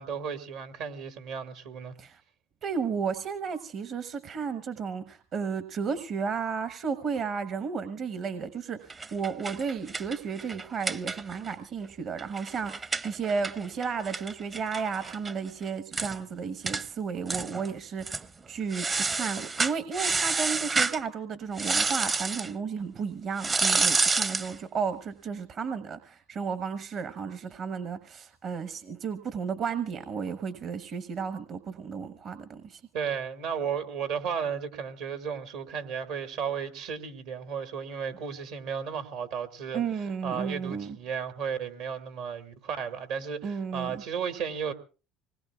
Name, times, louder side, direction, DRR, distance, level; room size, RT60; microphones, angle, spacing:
voice 1, 0.0-1.9 32.9-39.8 40.2-44.7, right 7 dB, 75° right, 2.0 m, -34 dB
voice 2, 2.6-32.8 39.7-41.0 43.4-44.0, right 6 dB, 50° right, 1.1 m, -33 dB
sound 1, 8.9-11.5 11.8-11.9 12.2-15.3 15.6-15.7 15.9-16.2 16.7-16.8 17.3-17.7 18.0-18.3 18.7-21.0 21.6-22.5 23.4-24.5, right 4 dB, 30° right, 0.7 m, -29 dB
25.5 x 19.5 x 2.4 m
hypercardioid pair, 70°, 0 cm